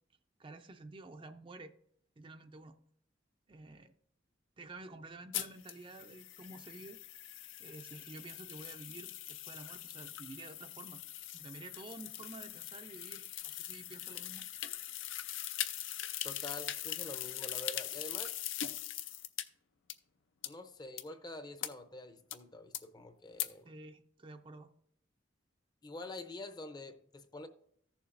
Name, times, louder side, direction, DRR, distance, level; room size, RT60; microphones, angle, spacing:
voice 1, 0.4-1.7 2.2-2.8 3.5-3.9 4.6-7.0 7.6-11.0 11.3-14.4 23.6-24.7, right 2 dB, 25° right, 0.4 m, -50 dB
sound 1, 5.3-19.4 19.9-20.0 20.4-20.5 21.0-21.1 21.6-21.7 22.3-22.4 22.7-22.8 23.4-23.5, left 12 dB, 85° left, 0.5 m, -41 dB
voice 2, 16.2-18.4 20.4-23.7 25.8-27.5, left 2 dB, 20° left, 0.6 m, -47 dB
14.5 x 7.0 x 2.5 m
head